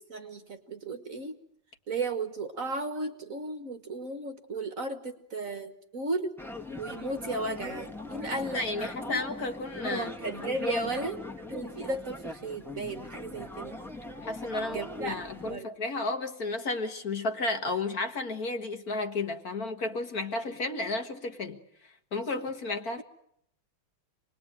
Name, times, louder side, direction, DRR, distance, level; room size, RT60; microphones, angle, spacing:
voice 1, 0.0-1.4 1.9-6.4 6.8-9.2 9.8-11.2 11.5-13.8 14.6-15.2 15.5-15.7, right 2 dB, 45° right, 1.6 m, -35 dB
sound 1, 6.4-15.6, left 2 dB, ahead, 1.9 m, -41 dB
voice 2, 8.3-10.1 10.6-10.9 14.2-21.6 22.1-23.0, left 2 dB, 45° left, 1.9 m, -32 dB
27.0 x 21.0 x 9.1 m
omnidirectional pair, 2.3 m